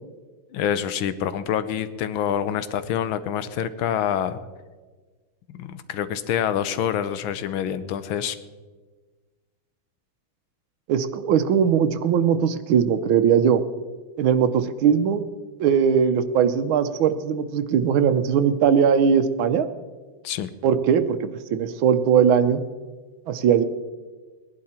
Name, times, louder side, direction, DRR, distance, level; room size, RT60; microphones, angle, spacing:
voice 1, 0.5-4.4 5.6-8.4 20.2-20.5, left 9 dB, 80° left, 13 dB, 1.5 m, -26 dB
voice 2, 10.9-13.6 14.2-15.3 15.6-19.7 20.6-22.6 23.3-23.6, right 7 dB, 80° right, 9 dB, 1.6 m, -20 dB
19.5 x 11.0 x 4.3 m, 1.4 s
omnidirectional pair, 2.2 m